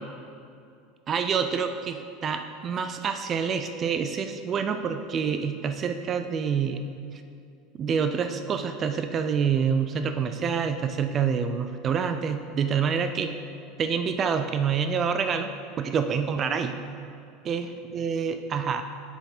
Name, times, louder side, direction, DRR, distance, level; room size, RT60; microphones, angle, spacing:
voice 1, 1.1-6.8 7.8-13.3 13.8-15.5 15.8-16.8 17.4-18.8, right 6 dB, 30° right, 8 dB, 0.4 m, -27 dB
7.3 x 6.5 x 4.3 m, 2.5 s
supercardioid pair, 130°, 0 cm